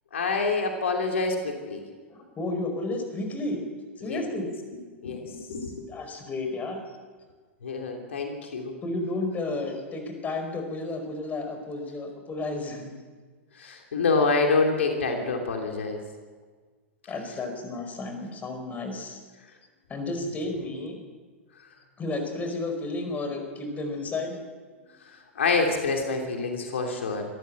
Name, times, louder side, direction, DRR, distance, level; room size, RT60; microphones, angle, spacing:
voice 1, 0.1-1.8 4.0-4.2 5.0-5.8 7.6-8.7 13.5-16.0 25.0-27.2, left 4 dB, 70° left, 2 dB, 3.0 m, -27 dB
voice 2, 2.1-3.6 4.0-4.5 5.9-6.8 8.8-12.9 17.1-19.2 19.9-21.0 22.0-24.4 26.9-27.0, left 2 dB, 20° left, 5 dB, 4.8 m, -32 dB
25.5 x 14.0 x 7.8 m, 1.4 s
figure-of-eight pair, 100°, 7 cm